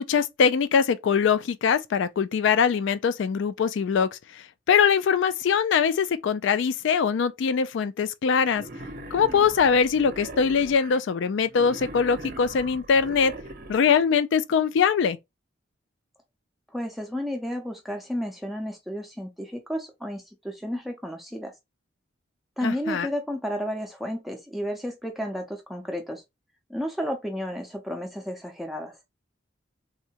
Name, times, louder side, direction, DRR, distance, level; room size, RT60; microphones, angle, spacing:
voice 1, 0.0-8.6 9.1-13.3 13.7-15.2 22.6-23.1, left 6 dB, 70° left, 0.3 m, -22 dB
Wild animals, 8.5-11.0 11.5-14.0, right 1 dB, 45° right, 0.6 m, -40 dB
voice 2, 16.7-21.5 22.6-26.2 26.7-29.0, equal, ahead, 0.4 m, -32 dB
3.6 x 2.1 x 2.7 m
head